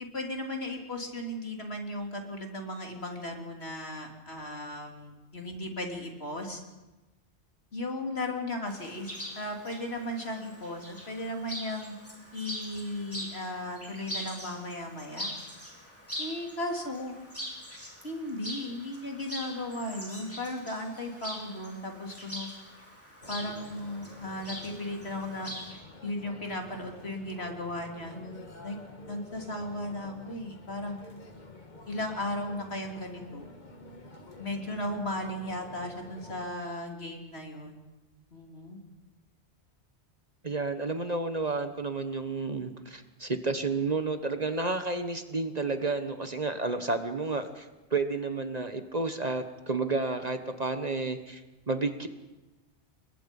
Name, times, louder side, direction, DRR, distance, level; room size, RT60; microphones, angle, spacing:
voice 1, 0.0-6.6 7.7-9.1 9.4-11.9 12.3-15.3 16.2-17.1 18.0-22.5 23.3-25.5 26.0-28.2 28.6-28.8 29.1-31.0 31.9-33.5 34.4-37.8 38.3-38.8, left 1 dB, 65° left, 2 dB, 3.6 m, -36 dB
Chirp tweet, 8.7-25.8, equal, 10° left, 5.1 m, -43 dB
sound 1, 23.2-36.5, left 2 dB, 40° left, 2.0 m, -49 dB
voice 2, 40.4-52.1, right 3 dB, 40° right, 8 dB, 1.4 m, -31 dB
30.0 x 22.0 x 5.5 m, 1.1 s
omnidirectional pair, 1.1 m